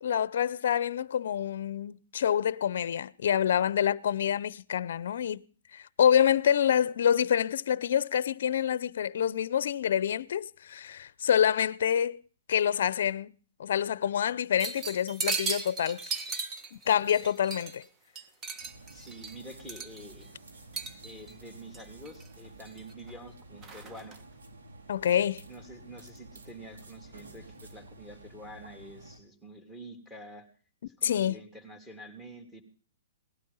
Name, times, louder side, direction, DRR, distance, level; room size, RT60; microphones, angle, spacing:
voice 1, 0.0-5.4 5.7-12.2 12.5-13.3 13.6-16.0 16.9-17.8 24.9-25.4 31.0-31.4, left 9 dB, 65° left, 0.6 m, -27 dB
sound 1, 14.6-17.8 18.2-20.2 20.7-21.3 21.7-22.3 22.7-23.2 23.6-24.2, right 4 dB, 20° right, 1.4 m, -37 dB
sound 2, 18.6-29.2, right 2 dB, 85° right, 4.1 m, -51 dB
voice 2, 18.9-20.3 21.0-24.2 25.1-30.5 30.8-32.6, right 1 dB, 5° right, 3.2 m, -47 dB
18.5 x 12.0 x 5.6 m
hypercardioid pair, 140°, 0 cm